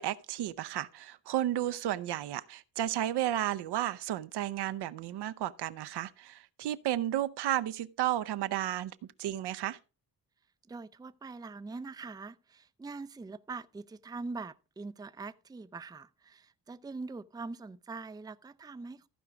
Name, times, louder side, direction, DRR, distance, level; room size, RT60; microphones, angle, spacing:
voice 1, 0.0-9.8, right 12 dB, 65° right, 0.7 m, -33 dB
voice 2, 10.7-19.1, right 3 dB, 10° right, 0.5 m, -43 dB
14.5 x 4.9 x 4.8 m
supercardioid pair, 55°, 43 cm